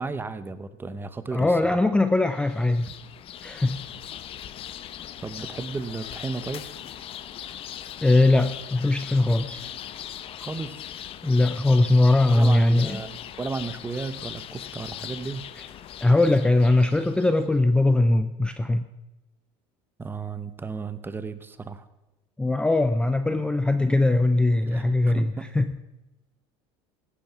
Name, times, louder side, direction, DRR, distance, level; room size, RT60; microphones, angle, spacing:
voice 1, 0.0-1.8 5.2-6.7 10.4-10.8 12.3-15.4 20.0-21.9 24.7-25.5, right 4 dB, 15° right, 13 dB, 0.9 m, -34 dB
voice 2, 1.3-2.9 3.4-3.8 8.0-9.7 11.2-13.0 16.0-18.9 22.4-25.8, left 2 dB, 5° left, 10 dB, 0.5 m, -21 dB
sound 1, 2.3-17.5, left 10 dB, 45° left, 0.8 m, -40 dB
15.5 x 8.9 x 5.6 m, 1.0 s
supercardioid pair, 120°, 14 cm